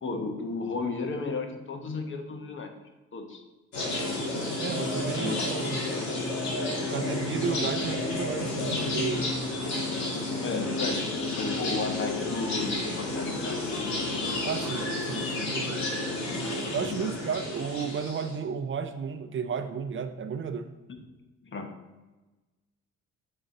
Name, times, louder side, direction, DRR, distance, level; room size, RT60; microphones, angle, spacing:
voice 1, 0.0-2.7 3.1-3.4 5.2-5.4 10.4-13.9 16.8-17.1 20.9-21.0 21.4-21.7, left 3 dB, 40° left, 5 dB, 1.1 m, -34 dB
sound 1, 3.7-18.4, left 2 dB, 65° left, 2.1 m, -31 dB
voice 2, 4.6-5.9 6.8-9.3 14.4-15.8 16.7-20.7, right 6 dB, 40° right, 8 dB, 0.5 m, -33 dB
7.7 x 3.9 x 4.1 m, 1.1 s
cardioid pair, 90°, 30 cm